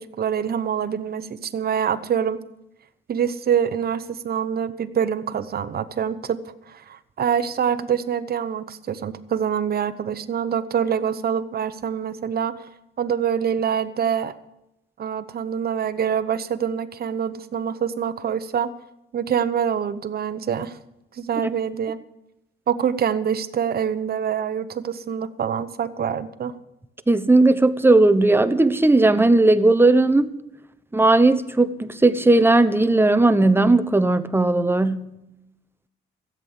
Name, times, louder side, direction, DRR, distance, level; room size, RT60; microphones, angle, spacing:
voice 1, 0.0-2.4 3.1-6.4 6.7-12.5 13.0-14.3 15.0-18.7 19.1-20.8 21.1-22.0 22.7-26.5, right 8 dB, 50° right, 1.0 m, -25 dB
voice 2, 27.1-30.3 30.9-35.1, right 2 dB, 10° right, 0.9 m, -17 dB
15.0 x 8.1 x 8.7 m
cardioid pair, 90°, 20 cm